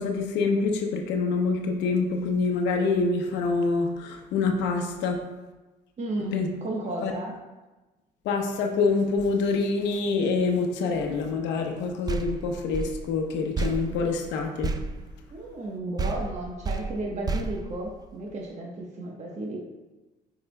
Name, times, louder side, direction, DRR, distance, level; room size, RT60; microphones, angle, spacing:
voice 1, 0.0-5.2 6.3-6.5 7.0-7.1 8.2-14.7, left 4 dB, 85° left, 3 dB, 0.8 m, -26 dB
voice 2, 6.0-7.3 15.3-19.6, right 2 dB, 40° right, -2 dB, 1.1 m, -33 dB
sound 1, 12.1-15.7 16.0-18.4, right 3 dB, 20° right, 0.4 m, -32 dB
8.6 x 4.8 x 2.2 m, 1.1 s
cardioid pair, 95°, 18 cm